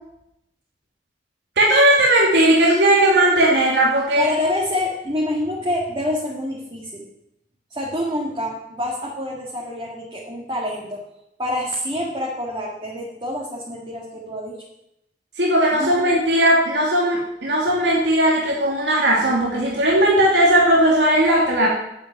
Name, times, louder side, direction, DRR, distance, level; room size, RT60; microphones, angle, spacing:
voice 1, 1.6-4.3 15.4-21.7, right 1 dB, 85° right, -3 dB, 2.5 m, -17 dB
voice 2, 4.2-7.0 7.7-11.0 11.4-14.6 15.7-16.1, left 1 dB, 30° right, -3 dB, 2.0 m, -27 dB
8.5 x 8.4 x 9.3 m, 0.84 s
head